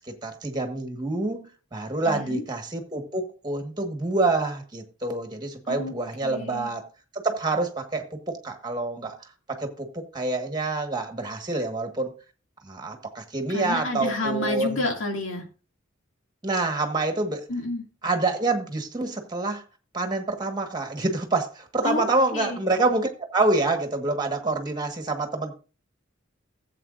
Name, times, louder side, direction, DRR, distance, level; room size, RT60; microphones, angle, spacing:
voice 1, 0.1-6.8 7.1-12.1 12.6-14.8 16.4-17.4 18.0-19.6 19.9-25.5, right 2 dB, 20° right, 1.5 m, -27 dB
voice 2, 2.1-2.4 5.7-5.9 6.2-6.7 13.5-15.4 17.5-17.8 21.8-22.6, left 2 dB, 75° left, 2.4 m, -30 dB
15.5 x 7.8 x 2.5 m
head